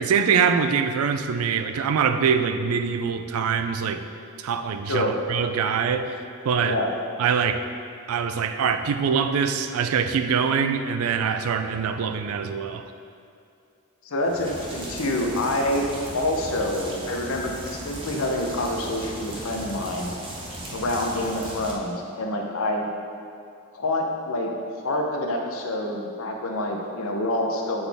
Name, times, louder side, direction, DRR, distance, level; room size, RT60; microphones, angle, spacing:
voice 1, 0.0-4.0 4.4-6.1 6.4-6.8 7.2-7.6 8.1-12.8, right 6 dB, 80° right, 8 dB, 0.4 m, -24 dB
voice 2, 14.0-15.8 16.1-20.1 20.7-22.9 23.7-24.5 24.8-27.9, left 1 dB, 70° left, 1 dB, 0.7 m, -27 dB
sound 1, 14.2-21.7, right 1 dB, 25° right, 0.6 m, -37 dB
7.7 x 4.0 x 3.4 m, 2.5 s
head